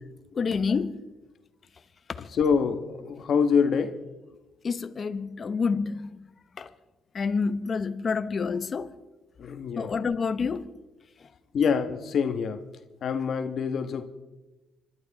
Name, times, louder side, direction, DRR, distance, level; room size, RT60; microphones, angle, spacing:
voice 1, 0.3-1.0 4.6-6.1 6.6-6.7 7.1-8.9 9.8-10.6, left 5 dB, 45° left, 1.0 m, -28 dB
voice 2, 2.3-4.0 9.4-9.9 11.5-12.6 13.0-14.0, left 6 dB, 60° left, 1.3 m, -25 dB
26.5 x 12.5 x 4.2 m
cardioid pair, 90°, 0 cm